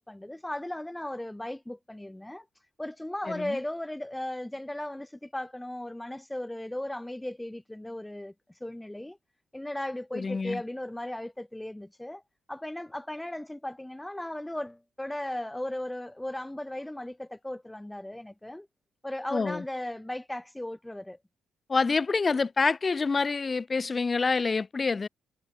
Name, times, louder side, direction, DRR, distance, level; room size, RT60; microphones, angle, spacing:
voice 1, 0.0-2.5 2.8-8.3 8.6-9.2 9.5-12.2 12.5-18.7 19.0-21.2, left 1 dB, 10° left, 3.5 m, -36 dB
voice 2, 3.3-3.6 10.1-10.6 19.3-19.6 21.7-25.1, left 4 dB, 30° left, 0.4 m, -27 dB
cardioid pair, 90°, 0 cm